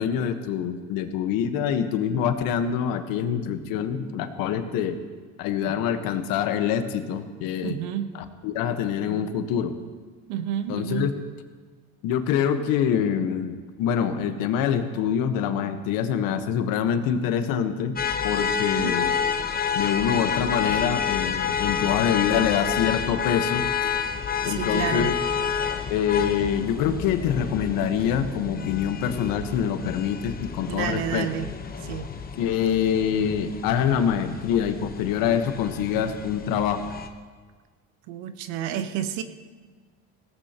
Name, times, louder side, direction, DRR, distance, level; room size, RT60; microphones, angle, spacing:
voice 1, 0.0-5.0 5.4-7.8 8.1-9.8 10.7-11.1 12.0-18.0 18.2-19.1 19.7-23.9 24.4-25.1 25.9-31.3 32.4-36.9, left 8 dB, 75° left, 8 dB, 1.3 m, -25 dB
voice 2, 7.6-8.1 10.3-11.1 18.7-19.0 24.4-25.1 30.7-31.5 31.8-32.1 38.1-39.2, right 10 dB, 85° right, 9 dB, 1.1 m, -30 dB
sound 1, 18.0-37.1, left 6 dB, 25° left, 1.0 m, -29 dB
19.5 x 17.0 x 2.9 m, 1.5 s
supercardioid pair, 110°, 35 cm